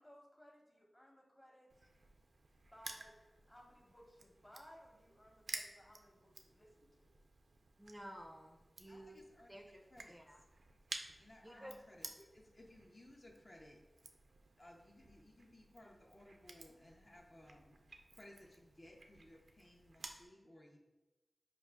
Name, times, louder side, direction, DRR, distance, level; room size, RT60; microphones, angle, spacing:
voice 1, 0.0-1.7 2.7-3.1 3.5-7.1 11.5-11.7, equal, 15° left, 0 dB, 0.9 m, -61 dB
Crushing, 1.7-20.3, right 3 dB, 80° right, 0.3 m, -54 dB
voice 2, 7.8-9.2 9.5-9.8 10.1-10.4 11.4-11.7, equal, 15° right, 0 dB, 0.4 m, -53 dB
voice 3, 8.9-9.6 9.9-10.4 11.2-13.8 14.6-17.8 18.1-20.8, left 1 dB, 40° left, -1 dB, 0.6 m, -60 dB
4.8 x 2.4 x 3.4 m, 1.1 s
wide cardioid pair, 55°, 0 cm